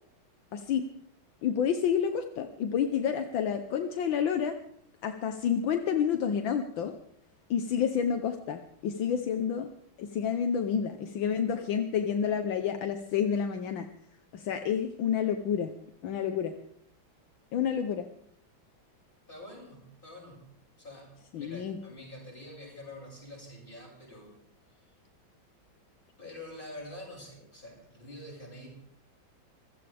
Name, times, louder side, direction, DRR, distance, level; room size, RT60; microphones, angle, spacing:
voice 1, 0.5-0.8 1.4-4.5 5.0-6.9 7.5-9.7 10.0-13.9 14.3-15.7 16.0-16.5 17.5-18.1 21.3-21.8, left 8 dB, 75° left, 7 dB, 1.7 m, -29 dB
voice 2, 19.3-20.4 20.8-24.3 24.7-24.9 26.2-28.7, left 1 dB, 25° left, -2 dB, 7.7 m, -46 dB
25.5 x 15.5 x 3.5 m, 0.67 s
omnidirectional pair, 2.2 m